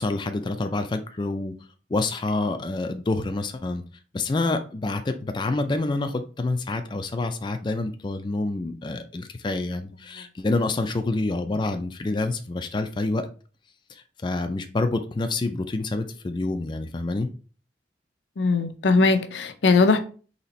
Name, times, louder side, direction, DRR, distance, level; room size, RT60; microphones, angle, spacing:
voice 1, 0.0-1.5 1.9-3.8 4.1-13.3 13.9-17.3, left 2 dB, 25° left, 0.4 m, -27 dB
voice 2, 18.4-20.0, left 3 dB, 80° left, 0.6 m, -20 dB
4.1 x 2.9 x 4.2 m
head